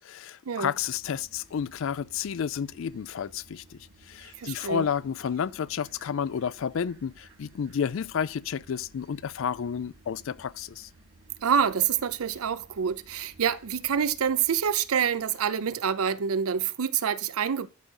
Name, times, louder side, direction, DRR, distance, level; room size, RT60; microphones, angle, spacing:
voice 1, 0.0-3.8 4.1-10.9, left 7 dB, 65° left, 0.3 m, -31 dB
sound 1, 0.8-16.1, right 2 dB, 60° right, 2.1 m, -56 dB
voice 2, 4.4-4.9 11.4-17.7, right 7 dB, 85° right, 0.5 m, -27 dB
11.5 x 3.9 x 6.3 m
head